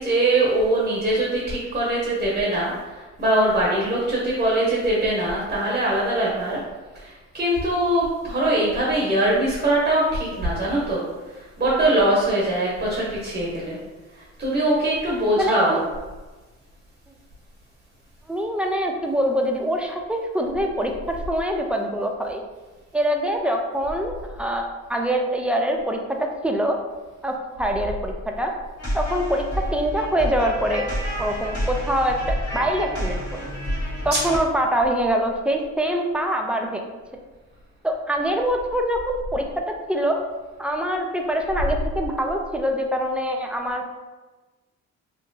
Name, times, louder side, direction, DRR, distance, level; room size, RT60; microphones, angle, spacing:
voice 1, 0.0-2.7 3.2-6.6 6.9-11.0 11.6-13.8 14.4-15.9 34.1-34.2, right 1 dB, 25° right, -5 dB, 0.9 m, -22 dB
voice 2, 15.4-15.8 18.3-22.4 22.9-26.8 27.2-28.5 28.9-29.4 29.7-30.9 31.2-33.4 34.0-36.8 37.8-39.4 39.9-40.2 40.6-43.9, equal, 5° right, 2 dB, 0.3 m, -24 dB
sound 1, 28.8-34.4, equal, 50° left, 1.5 m, -29 dB
3.0 x 2.8 x 2.6 m, 1.2 s
cardioid pair, 90°, 30 cm